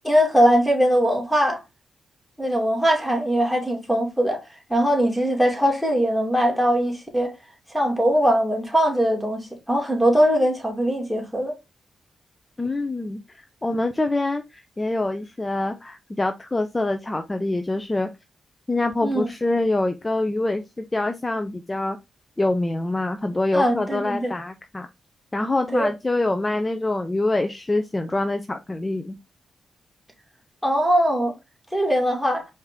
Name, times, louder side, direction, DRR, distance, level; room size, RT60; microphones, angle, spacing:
voice 1, 0.0-1.6 2.4-4.4 4.7-7.3 7.7-11.6 19.0-19.2 23.5-24.3 25.7-25.9 30.6-31.3 31.7-32.5, equal, ahead, 2.2 m, -21 dB
voice 2, 12.6-18.1 18.7-22.0 22.4-24.9 25.3-29.2, left 2 dB, 25° left, 0.6 m, -25 dB
4.8 x 2.8 x 3.6 m
supercardioid pair, 55°, 0 cm